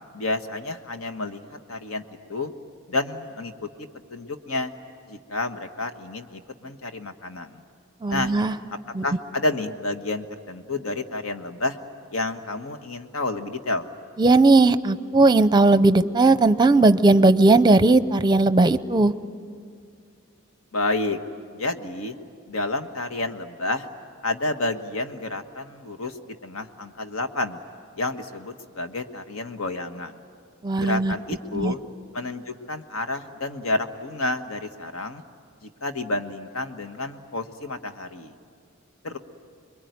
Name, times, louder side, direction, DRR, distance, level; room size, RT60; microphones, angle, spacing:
voice 1, 0.1-1.4 1.7-2.0 2.3-2.5 2.9-4.7 5.1-7.6 8.1-8.3 9.0-11.8 12.1-13.9 20.7-21.2 21.5-22.2 22.5-23.9 24.2-27.6 28.0-30.2 30.8-31.8 32.1-35.2 35.6-38.3 39.0-39.2, left 2 dB, 80° left, 7 dB, 1.4 m, -30 dB
voice 2, 8.0-8.5 8.9-9.1 14.2-19.1 30.6-31.1 31.5-31.7, right 3 dB, 20° right, 12 dB, 0.6 m, -17 dB
26.5 x 22.0 x 9.4 m, 2.2 s
head